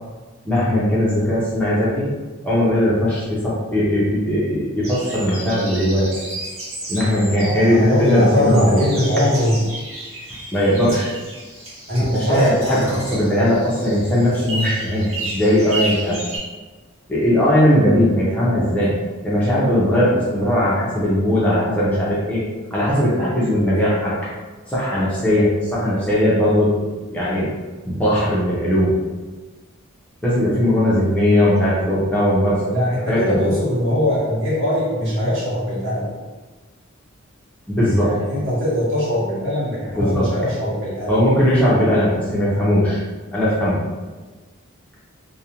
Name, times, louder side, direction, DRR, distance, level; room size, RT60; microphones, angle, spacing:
voice 1, 0.5-2.1 2.4-6.1 6.9-8.8 10.5-11.1 12.1-16.2 17.1-18.9 19.2-22.4 22.7-24.2 24.7-26.8 27.1-27.5 27.8-29.0 30.2-32.8 33.1-33.5 37.7-38.2 39.9-40.3 41.1-43.0 43.3-43.8, equal, 5° left, -8 dB, 0.5 m, -18 dB
sound 1, 4.8-16.4, right 1 dB, 85° right, 0.8 m, -33 dB
voice 2, 7.1-9.7 11.9-12.8 32.6-36.1 38.0-41.2, equal, 60° right, -7 dB, 1.0 m, -21 dB
2.4 x 2.1 x 2.8 m, 1.3 s
head